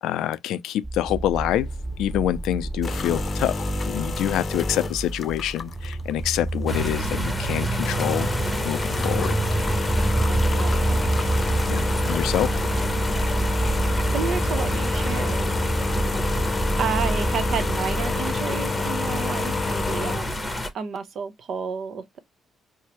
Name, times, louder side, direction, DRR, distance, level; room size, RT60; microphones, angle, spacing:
voice 1, 0.0-1.7 2.0-8.3 8.6-9.4 11.7-12.5, left 12 dB, 85° left, 0.3 m, -26 dB
sound 1, 0.8-18.3, right 2 dB, 15° right, 0.3 m, -28 dB
sound 2, 1.3-20.5, left 3 dB, 40° left, 0.6 m, -30 dB
sound 3, 6.7-20.7, equal, 10° left, 0.9 m, -30 dB
voice 2, 10.3-11.1 14.1-15.5 16.8-20.3 20.7-22.2, right 6 dB, 65° right, 0.7 m, -31 dB
4.5 x 2.1 x 2.9 m
cardioid pair, 90°, 0 cm